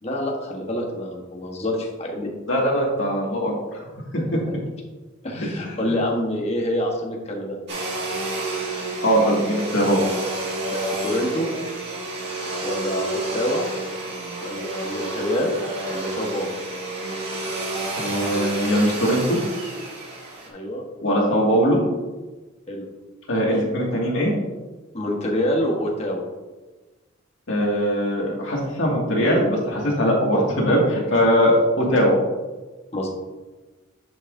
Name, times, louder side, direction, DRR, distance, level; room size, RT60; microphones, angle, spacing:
voice 1, 0.0-2.3 4.2-4.4 5.2-7.6 10.7-11.5 12.6-13.6 14.4-15.5 15.9-16.5 20.5-20.8 22.7-22.8 24.9-26.2 31.9-32.0 32.9-33.1, left 1 dB, 30° left, -1 dB, 1.2 m, -26 dB
voice 2, 2.5-3.5 5.6-5.7 9.0-10.0 17.9-19.4 21.0-21.8 23.3-24.3 27.5-32.2, equal, 60° left, -3 dB, 2.2 m, -20 dB
Domestic sounds home sounds, 7.7-20.5, right 2 dB, 55° right, 2.0 m, -30 dB
10.5 x 5.9 x 2.7 m, 1.2 s
head